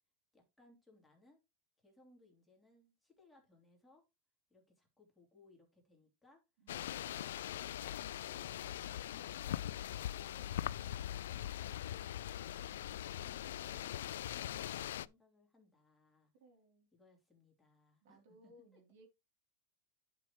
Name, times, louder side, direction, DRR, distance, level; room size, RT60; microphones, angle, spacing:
voice 1, 0.3-1.4 1.8-4.0 4.5-9.6 10.0-16.3 16.9-18.8, left 2 dB, 5° left, 3.1 m, -67 dB
voice 2, 6.6-7.1 10.7-11.0 12.9-13.4 16.4-16.9 18.0-19.1, right 1 dB, 70° right, 3.5 m, -65 dB
sound 1, 6.7-15.1, left 12 dB, 90° left, 0.4 m, -41 dB
10.5 x 6.0 x 3.2 m
supercardioid pair, 150°, 0 cm